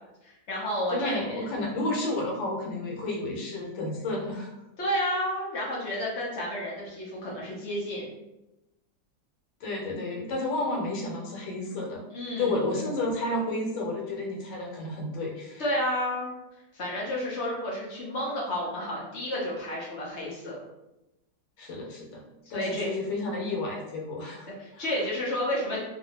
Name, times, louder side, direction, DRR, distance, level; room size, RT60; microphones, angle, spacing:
voice 1, 0.2-1.4 4.8-8.1 12.1-12.6 15.6-16.3 16.7-20.6 22.5-22.9 24.6-25.8, equal, 55° left, -4 dB, 0.8 m, -31 dB
voice 2, 0.9-4.5 9.6-12.0 12.4-15.6 21.6-22.2 22.5-24.9, left 2 dB, 75° left, -2 dB, 1.5 m, -31 dB
3.0 x 2.7 x 2.8 m, 0.92 s
omnidirectional pair, 2.0 m